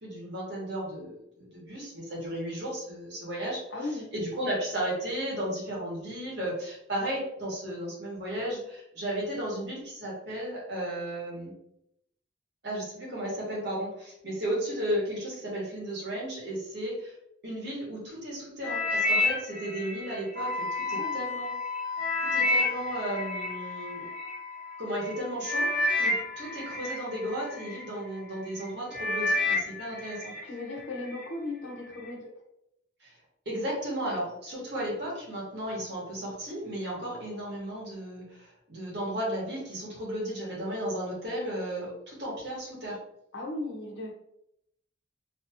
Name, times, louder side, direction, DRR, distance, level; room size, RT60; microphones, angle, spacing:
voice 1, 0.0-11.5 12.6-17.2 17.4-21.5 22.3-24.1 24.8-25.7 26.0-30.3 33.0-33.1 33.4-43.0, right 1 dB, 60° right, -5 dB, 1.5 m, -34 dB
voice 2, 3.7-4.1 20.9-21.2 30.4-32.4 43.3-44.1, left 2 dB, 85° left, 0 dB, 0.9 m, -36 dB
sound 1, 18.6-21.0 21.5-24.3 25.0-25.2 25.4-27.8 28.3-28.6 28.9-30.4 30.8-31.2 31.9-32.0, left 2 dB, 5° right, 0.9 m, -29 dB
Wind instrument woodwind instrument, 20.3-28.3, left 4 dB, 45° left, 0.7 m, -37 dB
3.1 x 2.8 x 2.8 m, 0.77 s
head